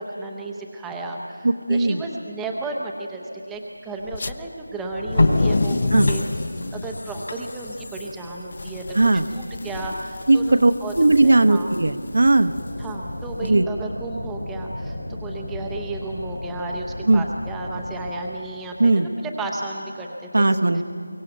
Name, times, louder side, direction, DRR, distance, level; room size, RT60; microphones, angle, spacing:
voice 1, 0.0-6.2 6.7-9.0 9.3-10.9 11.2-11.7 12.8-20.5 20.7-20.8, right 2 dB, 5° right, -1 dB, 0.7 m, -33 dB
voice 2, 1.4-2.0 5.9-6.1 8.9-9.3 10.3-10.7 11.0-12.5 13.5-13.7 17.1-17.2 18.8-19.1 20.3-20.8, right 2 dB, 65° right, 9 dB, 1.0 m, -17 dB
sound 1, 4.1-4.3 4.9-13.4, left 3 dB, 40° left, 0.6 m, -30 dB
sound 2, 4.4-4.5 5.0-9.7 10.1-10.2, left 2 dB, 55° left, 2.8 m, -26 dB
sound 3, 12.4-18.1, left 1 dB, 85° left, 3.2 m, -34 dB
23.5 x 17.0 x 7.9 m, 2.4 s
figure-of-eight pair, 175°, 0 cm